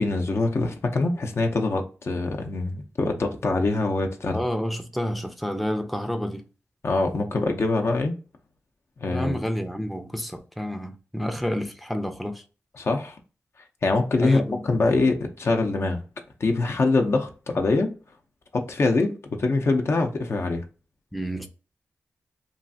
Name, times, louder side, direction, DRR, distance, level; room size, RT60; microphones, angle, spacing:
voice 1, 0.0-4.4 6.8-8.2 9.0-9.4 12.8-13.1 13.8-16.0 16.4-17.9 18.5-19.1 19.4-20.6, left 3 dB, 60° left, 0.6 m, -24 dB
voice 2, 4.3-6.4 9.1-12.4 14.2-14.7 21.1-21.5, equal, ahead, 0.4 m, -29 dB
3.1 x 2.4 x 2.6 m
cardioid pair, 65°, 5 cm